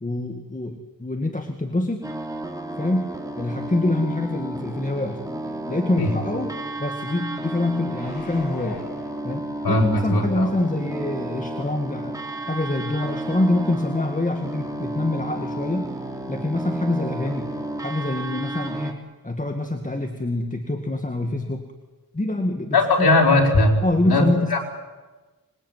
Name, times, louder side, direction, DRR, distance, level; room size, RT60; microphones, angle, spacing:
voice 1, 0.0-2.1 2.8-3.1 3.4-8.9 9.2-12.2 12.4-15.9 16.3-17.5 17.8-19.0 19.2-21.7 22.1-23.1 23.8-24.6, left 2 dB, 20° left, 4 dB, 2.0 m, -25 dB
sound 1, 2.0-18.9, right 1 dB, 10° right, 2.9 m, -32 dB
sound 2, 7.8-9.9 10.4-10.5, left 3 dB, 70° left, 7.4 m, -42 dB
voice 2, 9.6-10.5 22.7-23.7 24.0-24.2 24.5-24.6, left 2 dB, 90° left, 1 dB, 4.8 m, -18 dB
26.0 x 21.5 x 9.3 m, 1.2 s
wide cardioid pair, 125°, 37 cm